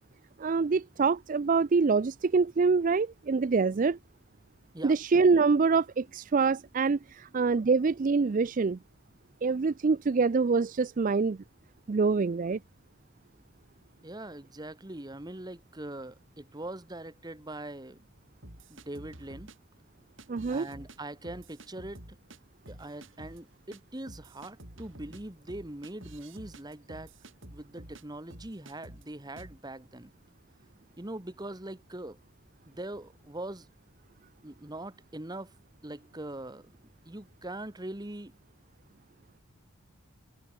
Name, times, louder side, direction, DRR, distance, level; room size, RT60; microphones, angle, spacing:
voice 1, 0.4-4.0 4.8-8.8 9.4-11.4 11.9-12.6 20.3-20.7, right 4 dB, 35° right, 0.4 m, -25 dB
voice 2, 14.0-18.0 18.7-19.5 20.5-22.2 22.7-27.1 27.5-30.1 31.0-32.2 32.6-33.7 34.4-35.5 35.8-36.8 37.0-38.3, right 1 dB, 20° right, 1.2 m, -42 dB
sound 1, 18.4-19.6 20.2-21.0 21.2-22.4 22.7-23.4 23.7-23.8 24.1-28.0 28.3-29.1 29.4-29.6, right 1 dB, 60° right, 5.5 m, -49 dB
head